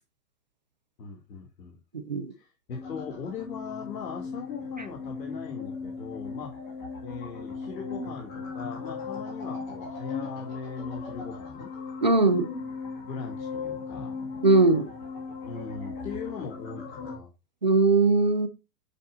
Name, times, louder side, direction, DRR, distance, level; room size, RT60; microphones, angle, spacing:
voice 1, 1.0-1.8 2.3-6.6 7.0-11.7 13.0-14.2 15.4-17.3, left 5 dB, 85° left, 2.9 m, -40 dB
sound 1, 2.7-17.2, left 4 dB, 20° left, 2.2 m, -38 dB
voice 2, 12.0-12.5 14.4-14.9 17.6-18.5, right 3 dB, 30° right, 0.4 m, -20 dB
9.3 x 7.4 x 2.6 m
supercardioid pair, 180°, 48 cm